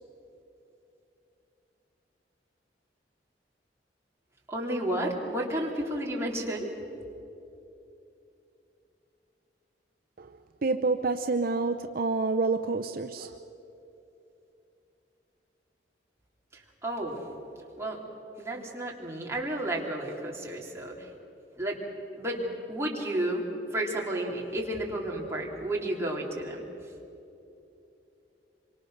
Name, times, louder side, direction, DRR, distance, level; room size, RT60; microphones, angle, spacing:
voice 1, 4.5-6.7 16.5-17.2 17.8-18.0 18.4-21.1 21.6-21.8 22.1-26.6, right 1 dB, 15° right, -2 dB, 3.3 m, -32 dB
voice 2, 10.2-13.4, right 3 dB, 55° right, 7 dB, 0.7 m, -28 dB
26.0 x 24.0 x 6.6 m, 2.9 s
head